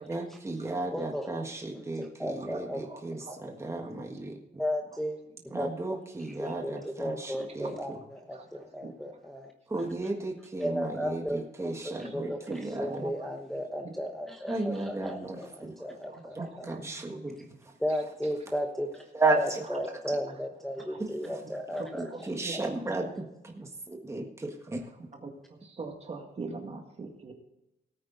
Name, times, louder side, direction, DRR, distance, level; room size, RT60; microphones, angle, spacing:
voice 1, 0.1-4.6 5.5-8.0 9.7-13.1 14.5-15.7 16.3-17.4 17.6-17.7 19.1-19.6 20.0-20.2 21.0-21.4 21.7-24.9, right 2 dB, 15° right, 2 dB, 1.6 m, -34 dB
voice 2, 0.9-1.3 2.0-2.9 4.6-5.2 5.5-6.0 6.4-9.5 10.6-11.4 12.0-16.8 17.8-19.0 19.4-22.6 23.0-23.1, equal, ahead, 1 dB, 1.1 m, -35 dB
voice 3, 16.1-17.2 20.9-21.3 21.8-22.2 22.4-22.6 25.1-27.3, right 4 dB, 40° right, 3 dB, 2.2 m, -42 dB
18.0 x 9.0 x 4.0 m, 0.89 s
wide cardioid pair, 165°, 17 cm